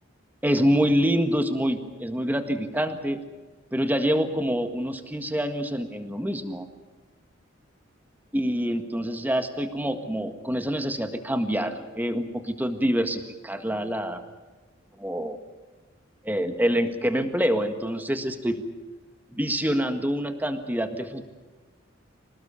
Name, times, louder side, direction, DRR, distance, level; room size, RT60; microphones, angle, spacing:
voice 1, 0.4-3.2 3.7-6.7 8.3-14.2 15.0-15.4 16.2-18.6 19.3-21.2, equal, 10° right, 7 dB, 1.7 m, -26 dB
26.5 x 18.5 x 7.0 m, 1.3 s
head